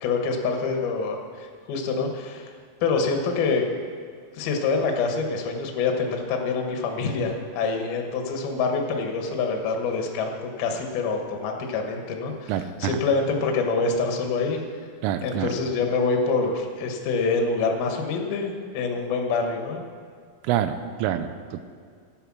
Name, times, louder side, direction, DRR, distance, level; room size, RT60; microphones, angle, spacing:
voice 1, 0.0-2.4 2.8-3.7 4.3-14.6 15.2-19.8, left 4 dB, 65° left, 3 dB, 2.6 m, -26 dB
voice 2, 12.5-13.0 15.0-15.5 20.5-21.6, right 10 dB, 85° right, 10 dB, 3.1 m, -27 dB
12.5 x 9.1 x 6.2 m, 2.1 s
omnidirectional pair, 5.9 m